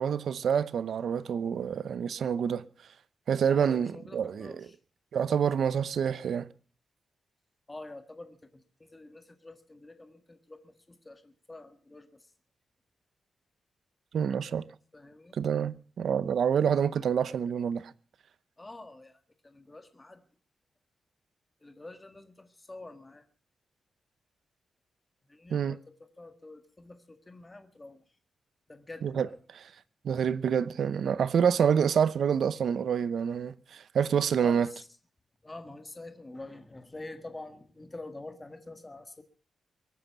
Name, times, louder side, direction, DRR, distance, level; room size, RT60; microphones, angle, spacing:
voice 1, 0.0-2.7 3.3-4.6 5.1-6.5 14.1-14.7 15.4-17.9 25.5-25.8 29.0-29.3 30.0-34.7, right 7 dB, 65° right, 0.8 m, -27 dB
voice 2, 3.5-4.8 7.7-12.3 14.9-15.4 18.6-20.2 21.6-23.2 25.3-28.0 28.7-29.4 34.4-34.9 35.4-39.2, left 2 dB, 15° left, 1.7 m, -47 dB
22.5 x 9.4 x 6.8 m
wide cardioid pair, 180°, 0 cm